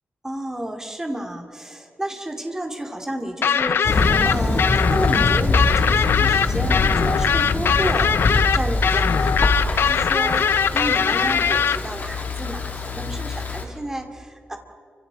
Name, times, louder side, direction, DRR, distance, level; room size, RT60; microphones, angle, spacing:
voice 1, 0.2-14.6, right 1 dB, 15° right, 3 dB, 2.6 m, -31 dB
sound 1, 3.4-11.8, left 7 dB, 75° left, 0.6 m, -20 dB
Thunder, 3.8-13.6, left 3 dB, 50° left, 2.9 m, -24 dB
30.0 x 25.5 x 4.1 m, 2.2 s
wide cardioid pair, 140°, 4 cm